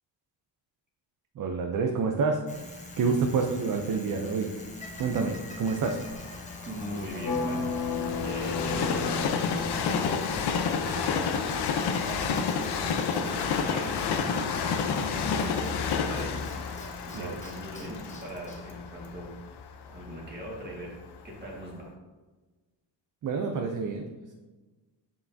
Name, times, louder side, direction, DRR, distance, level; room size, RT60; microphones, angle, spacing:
voice 1, 1.4-2.4 3.0-4.5 5.0-6.0 17.1-17.4 23.2-24.3, right 4 dB, 45° right, 3 dB, 0.5 m, -28 dB
Bicycle, 2.5-19.5, left 2 dB, 15° left, 0.8 m, -44 dB
Train, 5.0-20.9 21.5-21.6, left 6 dB, 60° left, 0.7 m, -30 dB
voice 2, 6.6-7.6 8.1-9.0 9.8-11.2 11.8-16.4 17.0-19.3 19.9-21.0 21.2-21.9, equal, 20° right, -3 dB, 1.7 m, -41 dB
sound 1, 7.2-11.0, left 3 dB, 45° left, 1.2 m, -33 dB
7.3 x 5.7 x 2.7 m, 1.3 s
cardioid pair, 145°, 45 cm